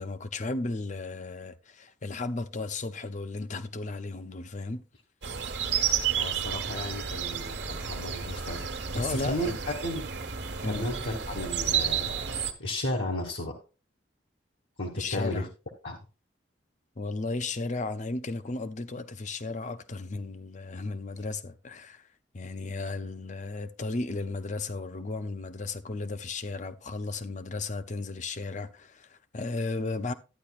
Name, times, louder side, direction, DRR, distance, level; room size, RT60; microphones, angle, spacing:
voice 1, 0.0-4.8 8.9-9.6 10.6-10.9 14.9-15.5 17.0-22.1 22.3-30.1, left 3 dB, 40° left, 0.6 m, -34 dB
sound 1, 5.2-12.5, right 8 dB, 70° right, 1.2 m, -31 dB
voice 2, 6.2-8.7 8.9-9.5 9.8-10.1 10.6-13.6 14.8-15.4 15.8-16.0, left 1 dB, 70° left, 1.5 m, -34 dB
12.0 x 9.5 x 2.4 m
head